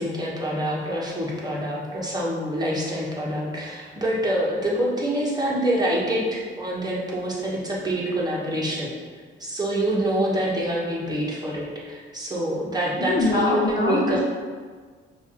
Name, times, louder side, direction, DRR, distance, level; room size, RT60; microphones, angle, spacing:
voice 1, 0.0-8.9 9.4-14.2, right 1 dB, 20° right, -5 dB, 1.2 m, -26 dB
voice 2, 13.0-14.2, left 2 dB, 45° left, -3 dB, 0.6 m, -23 dB
5.5 x 2.6 x 3.0 m, 1.5 s
cardioid pair, 90°, 20 cm